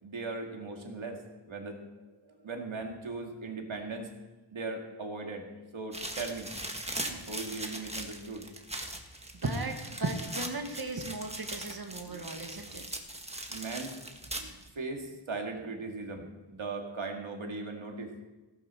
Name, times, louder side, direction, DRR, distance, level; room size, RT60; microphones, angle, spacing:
voice 1, 0.0-1.8 2.2-4.1 4.5-6.5 6.9-8.5 12.1-12.3 12.7-12.9 13.5-14.0 14.4-18.1, right 3 dB, 80° right, 2 dB, 2.2 m, -39 dB
sound 1, 5.9-14.7, right 1 dB, 15° right, 1.5 m, -40 dB
voice 2, 9.3-12.8, right 2 dB, 50° right, 5 dB, 1.6 m, -36 dB
15.5 x 14.5 x 4.4 m, 1.1 s
wide cardioid pair, 75°, 47 cm